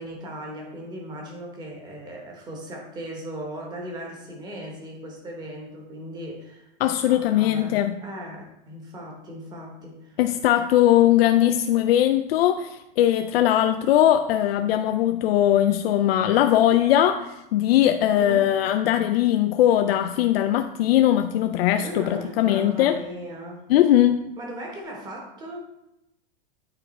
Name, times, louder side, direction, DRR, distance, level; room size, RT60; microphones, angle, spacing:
voice 1, 0.0-6.7 7.1-10.2 18.1-18.5 21.8-23.6 24.4-25.7, equal, 15° right, 0 dB, 1.0 m, -37 dB
voice 2, 6.8-7.9 10.2-23.0 23.7-24.2, left 12 dB, 85° left, 8 dB, 0.5 m, -20 dB
9.0 x 3.3 x 4.2 m, 0.87 s
supercardioid pair, 170°, 29 cm